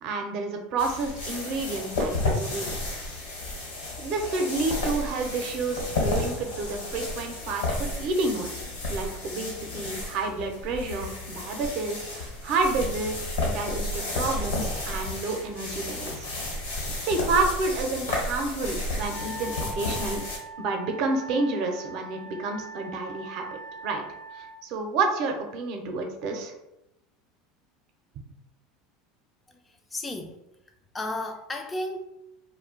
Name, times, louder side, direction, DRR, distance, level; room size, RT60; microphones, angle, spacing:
voice 1, 0.0-3.0 4.0-8.5 8.9-16.3 17.0-20.2 20.6-23.5 23.8-24.0 24.3-26.5, right 3 dB, 60° right, 3 dB, 0.6 m, -29 dB
sound 1, 0.8-20.4, left 2 dB, 85° left, 1.0 m, -32 dB
Wind instrument woodwind instrument, 19.0-24.6, right 1 dB, 70° left, 0.6 m, -41 dB
voice 2, 29.5-30.4 30.9-32.0, left 1 dB, 20° left, 4 dB, 0.3 m, -34 dB
2.4 x 2.1 x 3.7 m, 0.87 s
hypercardioid pair, 85°, 0 cm